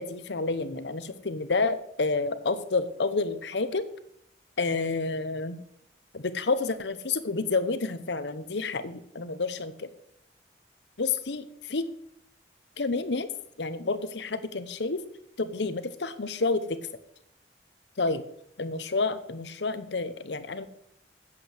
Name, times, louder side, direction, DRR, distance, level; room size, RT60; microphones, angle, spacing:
voice 1, 0.0-3.8 4.6-5.6 6.1-9.9 11.0-11.8 12.8-13.3 13.6-15.0 15.4-16.8 18.0-18.2 18.6-20.7, left 3 dB, 80° left, 12 dB, 0.9 m, -29 dB
8.4 x 7.5 x 8.0 m, 0.72 s
head